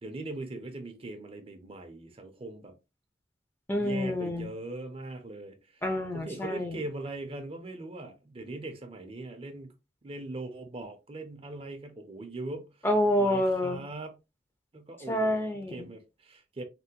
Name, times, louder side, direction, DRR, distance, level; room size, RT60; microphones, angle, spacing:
voice 1, 0.0-2.7 3.8-5.8 6.1-9.7 10.0-12.7 13.2-14.1 14.7-15.4 15.7-16.6, right 2 dB, 30° right, 0.5 m, -40 dB
voice 2, 3.7-4.5 5.8-6.8 12.8-13.8 15.1-15.9, left 1 dB, 15° left, 0.5 m, -28 dB
3.2 x 2.1 x 2.8 m
head